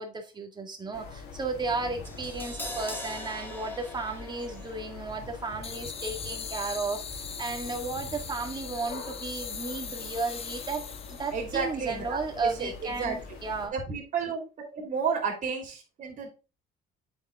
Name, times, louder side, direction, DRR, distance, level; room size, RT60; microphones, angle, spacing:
voice 1, 0.0-13.7, right 3 dB, 25° right, 1.9 m, -34 dB
sound 1, 0.9-13.7, left 4 dB, 85° left, 2.3 m, -44 dB
Crash cymbal, 2.1-8.2 8.5-8.6, left 1 dB, 10° left, 1.8 m, -44 dB
sound 2, 5.6-11.4, left 7 dB, 35° left, 0.8 m, -40 dB
voice 2, 11.3-13.2 13.7-14.4 14.7-16.3, right 5 dB, 50° right, 3.1 m, -32 dB
8.3 x 5.3 x 3.6 m
cardioid pair, 110°, 17 cm